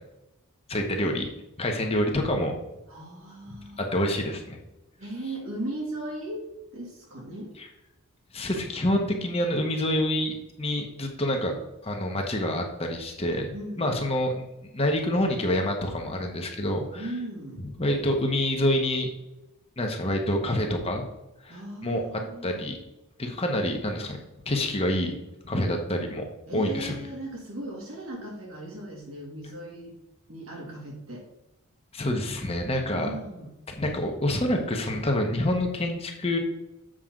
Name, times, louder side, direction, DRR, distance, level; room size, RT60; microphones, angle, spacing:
voice 1, 0.7-1.3 1.6-2.5 3.8-4.6 7.6-7.7 8.3-11.5 11.8-17.1 17.6-19.1 19.8-21.0 21.4-22.0 22.4-22.8 23.2-24.2 24.5-25.1 25.4-26.2 26.5-27.0 31.9-33.2 33.8-36.4, left 1 dB, 25° left, 3 dB, 1.0 m, -27 dB
voice 2, 2.9-3.8 5.0-6.4 6.7-7.5 13.5-14.1 16.9-17.7 21.5-22.5 26.5-29.9 30.3-31.2 32.9-33.5, right 1 dB, 70° right, -1 dB, 2.3 m, -37 dB
7.6 x 5.7 x 3.8 m, 0.93 s
head